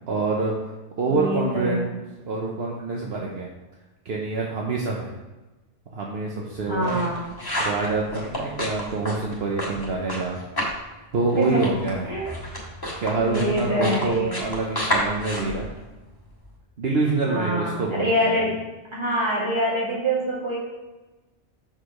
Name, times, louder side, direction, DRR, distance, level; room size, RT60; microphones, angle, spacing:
voice 1, 0.1-0.5 1.0-1.9 2.3-3.5 4.0-5.1 5.9-7.0 7.6-10.4 11.1-12.1 13.0-15.7 16.8-18.4, right 3 dB, 65° right, -2 dB, 1.1 m, -26 dB
voice 2, 1.1-1.9 6.7-7.3 11.4-11.7 12.0-12.3 13.2-14.4 17.2-18.6 18.9-20.6, equal, 25° right, -6 dB, 2.1 m, -25 dB
sound 1, 6.5-10.8 11.1-16.5, equal, 20° left, 1.5 m, -31 dB
6.2 x 4.9 x 5.0 m, 1.1 s
omnidirectional pair, 1.2 m